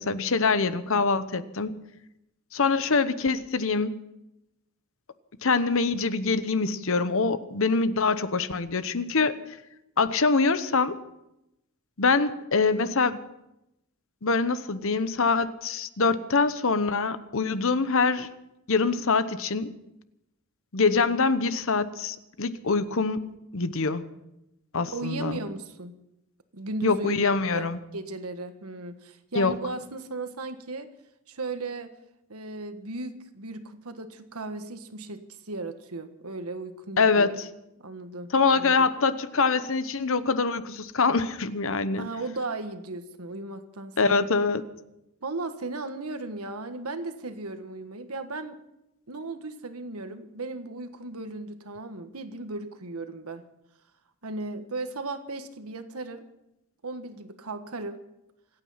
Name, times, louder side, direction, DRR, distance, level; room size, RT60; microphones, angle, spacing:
voice 1, 0.0-1.7 2.5-4.0 5.4-9.3 10.0-11.0 12.0-13.2 14.2-18.3 18.7-19.7 20.7-23.2 23.5-24.0 24.7-25.4 26.8-27.8 29.3-29.5 37.0-37.3 38.3-42.1 44.0-44.6, left 4 dB, 65° left, 13 dB, 1.0 m, -24 dB
voice 2, 24.9-25.9 26.5-30.9 31.3-32.0 32.3-37.3 37.8-38.9 42.0-44.2 45.2-48.6 49.1-53.4 54.2-56.2 56.8-58.0, right 2 dB, 90° right, 8 dB, 1.5 m, -36 dB
26.5 x 9.0 x 5.7 m, 0.88 s
head